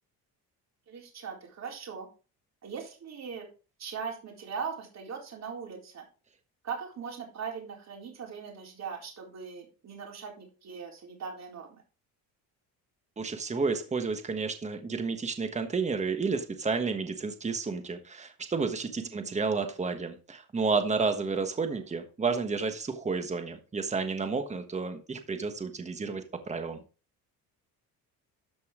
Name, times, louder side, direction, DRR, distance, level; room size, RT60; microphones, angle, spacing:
voice 1, 0.9-2.1 2.6-3.5 3.8-6.1 6.6-11.8 19.1-19.3, right 6 dB, 45° right, 4.0 m, -40 dB
voice 2, 13.2-26.8, right 4 dB, 20° right, 1.3 m, -31 dB
13.0 x 5.4 x 3.7 m
cardioid pair, 125°, 36 cm